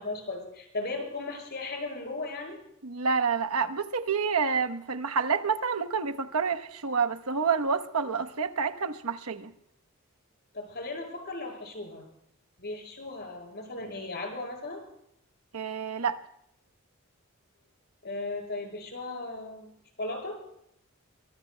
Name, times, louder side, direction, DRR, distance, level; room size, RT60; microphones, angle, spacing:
voice 1, 0.0-2.6 10.5-12.1 12.6-14.8 18.0-20.4, left 2 dB, 50° left, 2 dB, 6.8 m, -36 dB
voice 2, 2.8-9.5 15.5-16.2, right 5 dB, 90° right, 9 dB, 1.1 m, -28 dB
23.0 x 23.0 x 2.3 m, 0.75 s
head